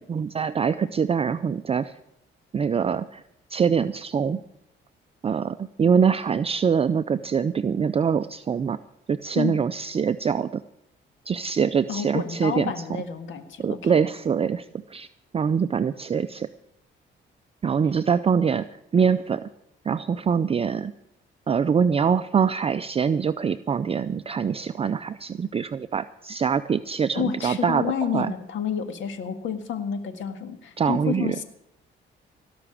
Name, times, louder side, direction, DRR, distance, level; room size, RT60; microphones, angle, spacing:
voice 1, 0.1-1.9 2.5-3.2 3.5-4.4 5.2-8.8 9.1-10.6 11.3-12.7 13.6-15.1 15.3-16.5 17.6-18.7 18.9-19.4 19.8-20.9 21.5-28.3 30.8-31.3, right 6 dB, 30° right, 12 dB, 0.4 m, -24 dB
voice 2, 11.9-13.9 27.2-31.4, left 7 dB, 75° left, 8 dB, 1.8 m, -30 dB
17.5 x 6.0 x 9.9 m, 0.80 s
cardioid pair, 90°, 20 cm